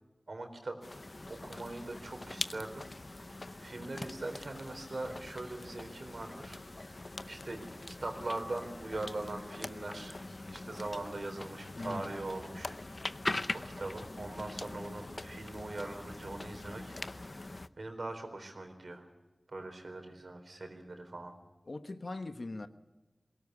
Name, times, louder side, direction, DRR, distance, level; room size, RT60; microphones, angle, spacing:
voice 1, 0.3-0.8 1.3-2.8 3.2-7.6 7.9-10.2 10.5-12.8 13.5-19.1 19.5-21.3, right 2 dB, 75° right, 4.2 m, -42 dB
sound 1, 0.8-17.7, left 2 dB, 45° left, 0.7 m, -43 dB
voice 2, 11.7-12.1 21.7-22.7, left 2 dB, 65° left, 1.2 m, -40 dB
22.5 x 18.0 x 9.7 m
wide cardioid pair, 65°, 0 cm